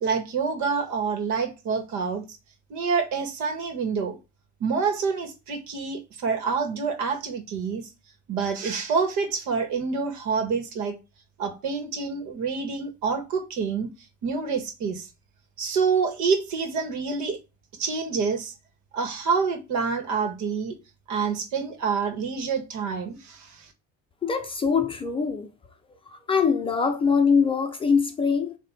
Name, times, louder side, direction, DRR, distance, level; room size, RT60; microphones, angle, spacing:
voice 1, 0.0-2.2 2.7-4.2 4.6-7.9 8.3-11.0 11.4-13.9 14.2-15.1 15.6-17.4 17.8-18.5 18.9-20.8 21.1-23.7, right 5 dB, 65° right, 1.8 m, -27 dB
voice 2, 24.2-25.5 26.1-28.6, left 5 dB, 15° left, 0.6 m, -23 dB
7.7 x 2.9 x 6.1 m
cardioid pair, 165°, 30 cm